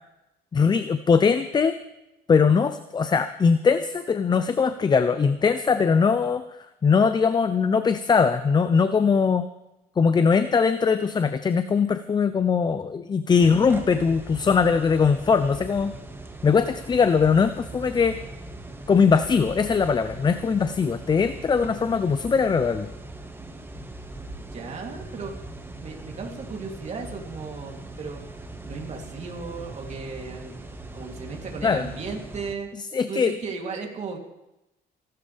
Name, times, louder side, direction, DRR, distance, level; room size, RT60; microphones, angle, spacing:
voice 1, 0.5-1.8 2.3-6.4 6.8-9.4 10.0-15.9 16.4-18.2 18.9-22.9 31.6-31.9 32.9-33.3, left 5 dB, 25° left, 11 dB, 0.6 m, -21 dB
sound 1, 13.4-32.5, right 2 dB, 15° right, 1.6 m, -40 dB
voice 2, 24.4-25.4 25.8-28.2 28.7-30.7 30.9-32.7 33.1-34.2, right 4 dB, 40° right, 1 dB, 3.1 m, -36 dB
26.5 x 12.5 x 3.5 m, 0.92 s
cardioid pair, 110°, 17 cm